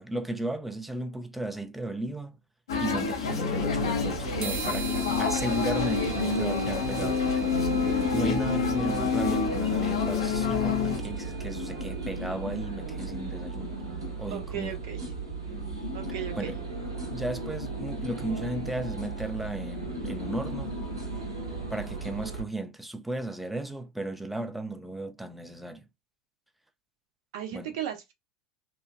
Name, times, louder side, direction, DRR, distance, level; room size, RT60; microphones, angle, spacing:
voice 1, 0.0-2.3 2.8-4.9 5.2-13.8 14.2-14.8 16.4-16.6 17.1-20.7 21.7-25.8 27.5-27.7, right 1 dB, 5° right, 0.4 m, -35 dB
sound 1, 2.7-11.0, left 5 dB, 80° left, 0.8 m, -27 dB
sound 2, 3.5-22.4, right 3 dB, 90° right, 0.9 m, -36 dB
sound 3, 4.4-12.1, right 6 dB, 45° right, 1.0 m, -43 dB
voice 2, 14.3-15.1 15.9-16.5 27.3-28.1, right 10 dB, 65° right, 0.8 m, -36 dB
3.0 x 2.3 x 2.2 m
hypercardioid pair, 80°, 3 cm